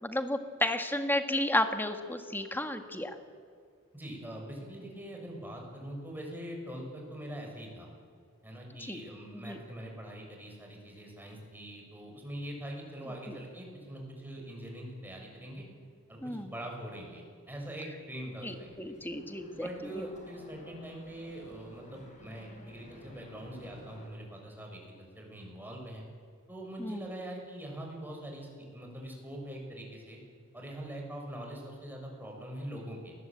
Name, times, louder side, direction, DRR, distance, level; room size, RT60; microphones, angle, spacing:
voice 1, 0.0-3.1 8.8-9.0 9.3-9.6 13.3-13.4 16.2-16.5 18.4-19.7 19.9-20.1 26.8-27.1, left 1 dB, 10° left, 7 dB, 1.9 m, -32 dB
voice 2, 3.9-7.9 8.4-15.6 16.1-18.8 19.5-26.0 26.5-30.2 30.5-33.1, right 1 dB, 10° right, 0 dB, 6.7 m, -43 dB
sound 1, 18.4-24.1, equal, 35° left, 5.3 m, -54 dB
28.0 x 20.5 x 8.8 m, 2.2 s
head